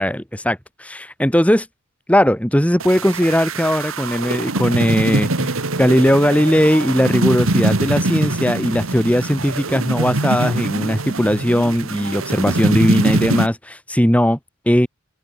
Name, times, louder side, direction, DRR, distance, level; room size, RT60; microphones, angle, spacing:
voice 1, 0.0-1.6 2.1-5.5 5.8-14.4 14.7-14.9, equal, 5° left, 2.4 m, -18 dB
sound 1, 2.8-13.5, right 2 dB, 80° right, 1.9 m, -23 dB
open air
head